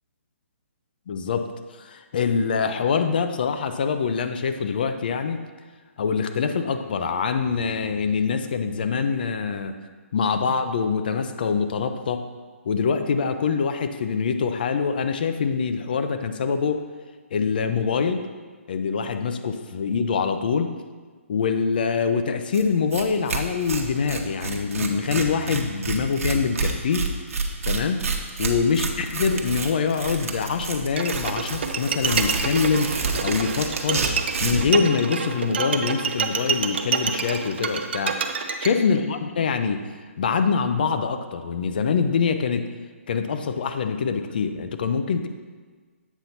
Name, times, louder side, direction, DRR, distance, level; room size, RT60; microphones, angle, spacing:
voice 1, 1.1-1.5 1.8-5.4 6.0-9.7 10.1-12.2 12.6-16.8 17.3-18.2 18.7-20.7 21.3-27.1 27.7-28.0 28.4-34.0 34.4-38.2 38.6-39.8 40.2-42.6 43.1-45.3, left 5 dB, 40° left, 9 dB, 0.5 m, -24 dB
Tearing, 22.5-22.6 22.9-23.0 23.3-34.7, right 4 dB, 70° right, 1.1 m, -29 dB
Bowed string instrument, 31.0-38.7, right 6 dB, 50° right, 0.6 m, -27 dB
8.1 x 4.0 x 5.7 m, 1.5 s
hypercardioid pair, 170°, 8 cm